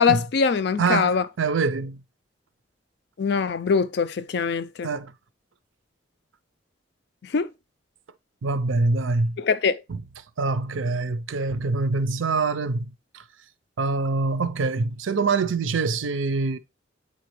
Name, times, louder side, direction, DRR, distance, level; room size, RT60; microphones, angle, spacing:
voice 1, 0.0-1.2 3.2-4.9 7.2-7.5 9.4-9.8, left 5 dB, 60° left, 0.4 m, -22 dB
voice 2, 0.8-2.0 4.8-5.1 8.4-9.4 9.9-10.0 10.4-13.2 13.8-16.6, right 3 dB, 85° right, 0.5 m, -25 dB
8.5 x 4.1 x 3.1 m
head